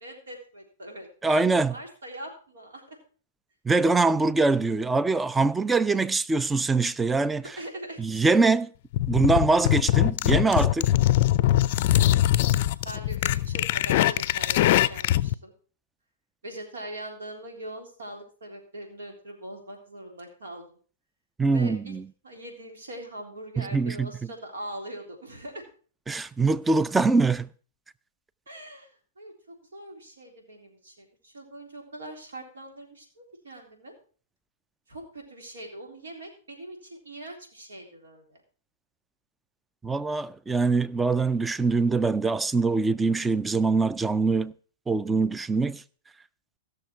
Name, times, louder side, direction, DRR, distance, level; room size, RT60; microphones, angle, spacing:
voice 1, 0.0-3.0 7.4-8.0 12.8-15.5 16.4-20.8 21.5-22.0 22.2-25.7 28.5-28.9 29.2-33.9 34.9-38.4, right 1 dB, 80° right, 3.6 m, -42 dB
voice 2, 1.2-1.7 3.6-7.6 8.0-8.7 9.1-10.9 21.4-22.0 23.6-24.3 26.1-27.5 39.8-44.5 44.9-45.8, right 3 dB, 10° right, 0.4 m, -23 dB
sound 1, 8.9-15.3, left 14 dB, 50° left, 0.4 m, -22 dB
15.5 x 6.6 x 4.5 m
hypercardioid pair, 120°, 0 cm